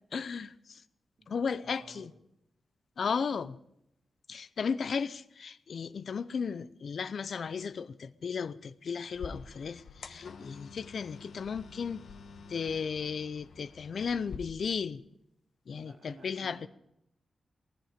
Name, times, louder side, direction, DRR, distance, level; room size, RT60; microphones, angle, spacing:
voice 1, 0.1-0.8 1.3-2.1 3.0-3.6 4.3-12.0 12.5-15.0 15.7-16.7, left 6 dB, 70° left, 0.6 m, -35 dB
voice 2, 1.2-2.1 15.8-16.7, right 3 dB, 60° right, 2.7 m, -55 dB
sound 1, 9.1-14.4, left 5 dB, 85° left, 1.2 m, -47 dB
19.0 x 14.5 x 5.1 m
cardioid pair, 85°, 0 cm